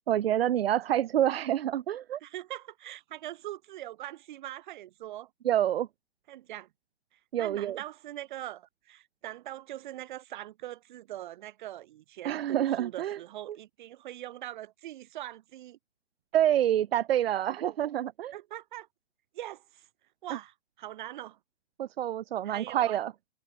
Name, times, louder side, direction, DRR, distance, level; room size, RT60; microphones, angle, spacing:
voice 1, 0.1-2.2 5.4-5.9 7.3-7.8 12.2-13.2 13.5-13.6 16.3-18.3 20.3-20.4 21.8-23.1, right 11 dB, 65° right, 0.4 m, -27 dB
voice 2, 2.2-5.3 6.3-6.7 7.4-15.8 18.3-18.9 19.3-19.9 20.2-21.4 22.4-23.0, right 13 dB, 45° right, 4.2 m, -42 dB
figure-of-eight pair, 120°, 32 cm